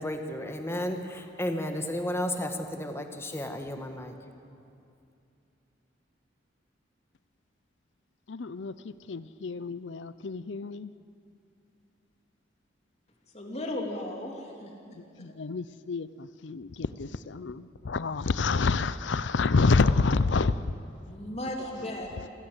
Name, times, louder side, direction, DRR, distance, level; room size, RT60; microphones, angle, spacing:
voice 1, 0.0-4.3, left 1 dB, 15° left, 5 dB, 1.5 m, -33 dB
voice 2, 8.3-10.9 15.2-20.7, left 4 dB, 75° left, 15 dB, 0.6 m, -28 dB
voice 3, 13.3-15.3 21.1-22.3, left 1 dB, 35° left, 1 dB, 3.1 m, -36 dB
27.5 x 16.5 x 8.1 m, 2.5 s
head